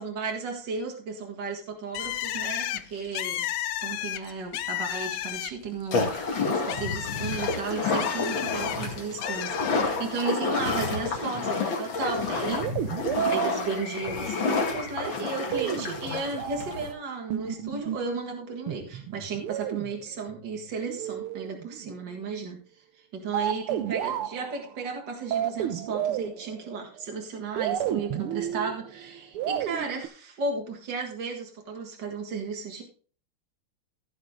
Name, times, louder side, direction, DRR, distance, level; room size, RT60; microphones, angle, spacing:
voice 1, 0.0-3.5 3.8-6.1 6.5-12.6 13.3-32.8, right 4 dB, 55° right, 1 dB, 2.5 m, -34 dB
Bird, 1.9-5.8 6.1-8.8 9.2-9.9, left 13 dB, 80° left, 1.5 m, -33 dB
sound 1, 5.9-16.9, left 4 dB, 60° left, 2.7 m, -29 dB
sound 2, 12.4-14.4 15.5-16.8 17.3-18.2 18.7-21.9 23.3-27.0 27.6-30.1, right 11 dB, 85° right, 1.7 m, -32 dB
15.5 x 6.5 x 3.7 m, 0.40 s
omnidirectional pair, 2.4 m